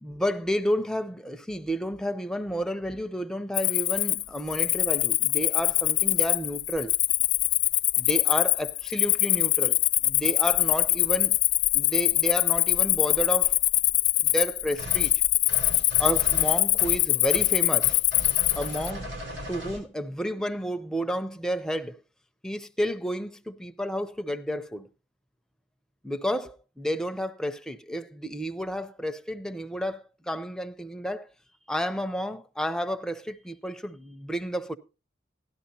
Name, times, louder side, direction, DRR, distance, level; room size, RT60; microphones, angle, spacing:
voice 1, 0.0-6.9 8.0-11.4 11.7-13.5 14.2-15.1 16.0-17.9 18.5-19.1 19.5-22.0 22.4-24.9 26.0-31.3 31.7-34.8, equal, 5° left, 0.5 m, -31 dB
Cricket, 3.5-18.9, left 17 dB, 65° left, 0.7 m, -23 dB
sound 1, 14.8-15.1 15.5-17.0 17.3-17.5 17.8-19.8, equal, 85° right, 6.6 m, -37 dB
17.0 x 11.5 x 2.8 m
head